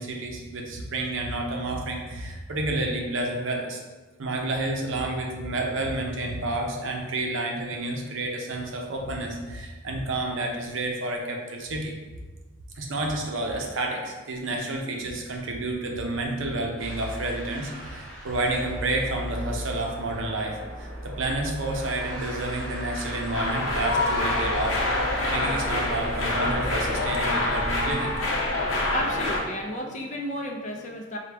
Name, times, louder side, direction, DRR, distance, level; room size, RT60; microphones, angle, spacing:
voice 1, 0.0-3.8 4.2-11.9 12.8-24.8 25.3-28.1, right 2 dB, 70° right, 1 dB, 0.6 m, -30 dB
sound 1, 16.8-27.9, right 1 dB, 5° left, 1.2 m, -36 dB
sound 2, 23.3-29.4, left 2 dB, 75° left, 0.8 m, -26 dB
voice 2, 28.7-31.2, equal, 35° left, 1 dB, 0.4 m, -33 dB
5.0 x 2.3 x 3.4 m, 1.3 s
head